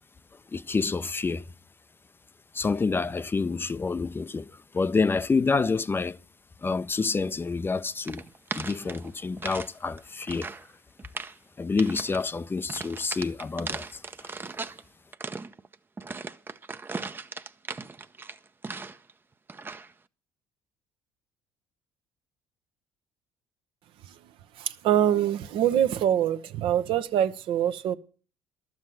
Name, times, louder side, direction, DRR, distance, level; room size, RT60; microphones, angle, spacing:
voice 1, 0.5-1.4 2.5-6.2 6.6-8.2 8.5-10.5 11.6-14.3, left 4 dB, 25° left, 0.5 m, -28 dB
sound 1, 8.0-9.7 10.0-10.7 11.0-11.4 11.8-12.2 12.7-14.8 15.1-19.1 19.5-19.9, right 4 dB, 20° right, 0.6 m, -38 dB
voice 2, 24.6-27.9, right 10 dB, 65° right, 0.8 m, -24 dB
12.0 x 7.4 x 7.7 m
supercardioid pair, 70°, 10 cm